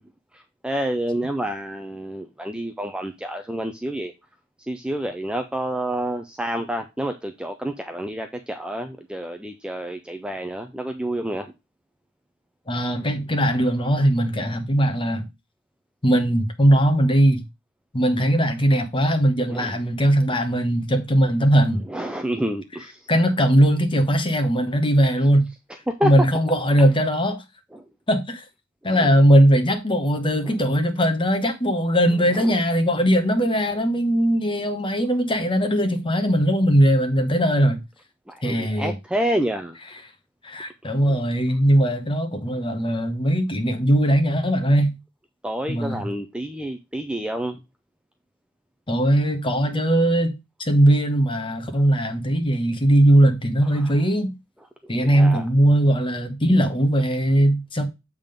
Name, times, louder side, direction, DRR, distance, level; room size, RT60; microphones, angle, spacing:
voice 1, 0.3-4.1 4.7-11.5 19.5-19.7 21.8-23.1 25.2-25.3 26.0-26.1 27.7-27.8 28.9-29.1 30.4-30.6 32.3-32.5 38.3-39.8 40.8-41.2 45.4-47.6 53.7-53.9 54.8-55.5, right 1 dB, 5° right, 0.5 m, -29 dB
voice 2, 12.7-15.2 16.0-17.4 17.9-21.8 23.1-25.5 26.0-27.4 28.1-28.4 28.8-37.8 38.4-38.9 40.4-44.9 45.7-46.1 48.9-50.3 50.6-54.3 54.9-57.8, equal, 25° left, 1.1 m, -19 dB
7.4 x 3.7 x 5.1 m
head